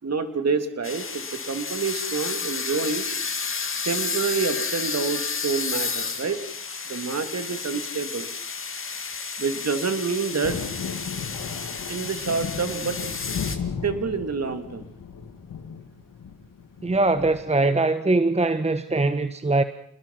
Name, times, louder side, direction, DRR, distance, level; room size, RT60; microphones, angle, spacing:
voice 1, 0.0-3.0 3.8-6.4 6.9-8.3 9.4-10.6 11.9-13.0 13.5-14.9, right 5 dB, 45° right, 3.3 m, -27 dB
sound 1, 0.8-13.6, left 5 dB, 35° left, 2.5 m, -31 dB
Thunder, 10.4-17.4, left 6 dB, 65° left, 3.1 m, -35 dB
voice 2, 16.8-19.6, right 2 dB, 20° right, 1.4 m, -22 dB
28.5 x 20.5 x 5.9 m
supercardioid pair, 60°, 35 cm